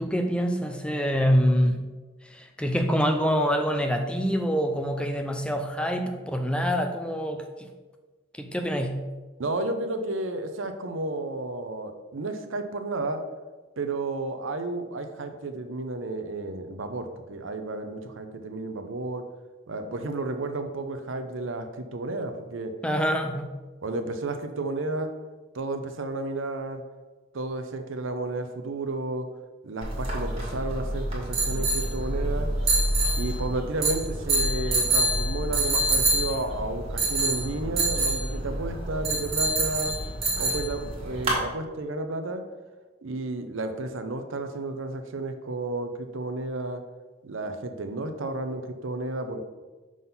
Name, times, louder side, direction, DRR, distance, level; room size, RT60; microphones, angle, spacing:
voice 1, 0.0-1.9 2.2-7.7 8.3-9.1 22.8-23.6, equal, 5° left, 5 dB, 0.4 m, -26 dB
voice 2, 9.4-13.2 13.8-19.2 19.7-22.7 23.8-25.1 25.5-26.8 27.3-29.3 29.6-32.5 33.2-40.0 40.3-42.4 43.0-46.8 47.2-49.4, right 2 dB, 80° right, 7 dB, 0.7 m, -32 dB
sound 1, 29.8-41.4, right 2 dB, 30° right, 1.7 m, -26 dB
6.1 x 3.9 x 5.4 m, 1.3 s
head